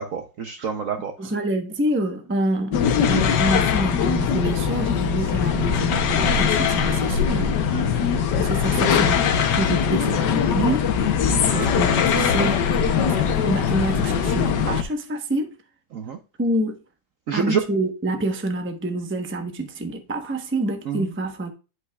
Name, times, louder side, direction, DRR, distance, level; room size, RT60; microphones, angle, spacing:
voice 1, 0.0-1.3 11.3-11.7 12.1-12.5 15.9-16.2 17.3-17.6 20.9-21.1, right 7 dB, 60° right, 0.9 m, -28 dB
voice 2, 1.2-7.8 8.4-9.2 9.5-10.9 11.5-15.6 16.4-16.8 17.3-21.5, right 1 dB, 10° right, 0.6 m, -27 dB
sound 1, 2.7-14.8, left 7 dB, 70° left, 1.4 m, -21 dB
11.0 x 5.5 x 2.3 m
omnidirectional pair, 2.1 m